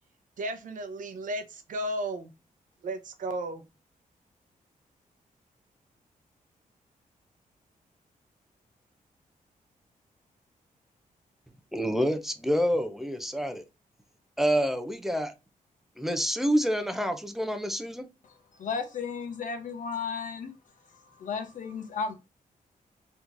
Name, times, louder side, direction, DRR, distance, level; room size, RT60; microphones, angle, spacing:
voice 1, 0.4-2.3 2.8-3.7, right 1 dB, 65° right, 0.7 m, -34 dB
voice 2, 11.7-13.6 14.4-15.3 16.0-18.1, equal, ahead, 0.5 m, -27 dB
voice 3, 18.6-20.5 21.1-22.1, left 5 dB, 65° left, 0.9 m, -34 dB
3.6 x 3.0 x 2.6 m
wide cardioid pair, 160°, 14 cm